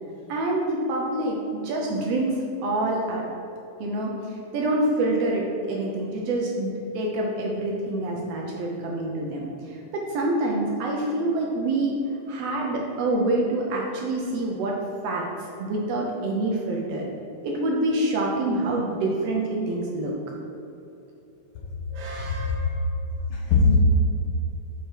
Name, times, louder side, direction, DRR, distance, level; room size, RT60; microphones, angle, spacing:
voice 1, 0.3-3.2 3.8-12.0 12.3-14.8 15.0-17.1 17.4-20.2 21.9-22.7, right 2 dB, 75° right, -2 dB, 1.5 m, -26 dB
voice 2, 22.3-22.8 23.3-23.8, left 4 dB, 65° left, -4 dB, 1.3 m, -21 dB
6.5 x 5.3 x 4.5 m, 2.9 s
omnidirectional pair, 3.6 m